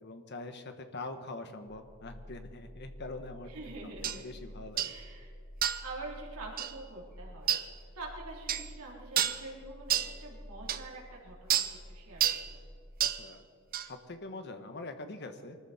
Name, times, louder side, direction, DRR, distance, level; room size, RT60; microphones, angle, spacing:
voice 1, 0.0-3.7 4.1-4.9 13.1-13.4 13.8-15.6, left 2 dB, 50° left, 8 dB, 1.2 m, -43 dB
sound 1, 1.7-12.9, equal, 70° left, 5.2 m, -50 dB
voice 2, 3.5-4.4 4.8-5.3 5.6-7.7 7.9-12.7, right 2 dB, 90° right, -3 dB, 3.4 m, -46 dB
sound 2, 4.0-4.2 4.8-5.0 5.6-5.9 6.6-6.7 7.5-7.7 8.5-8.7 9.2-9.4 9.9-10.1 10.7-10.8 11.5-11.7 12.2-12.5 13.0-13.2 13.7-13.9, right 10 dB, 40° right, 0.7 m, -29 dB
23.5 x 13.5 x 4.3 m, 2.4 s
head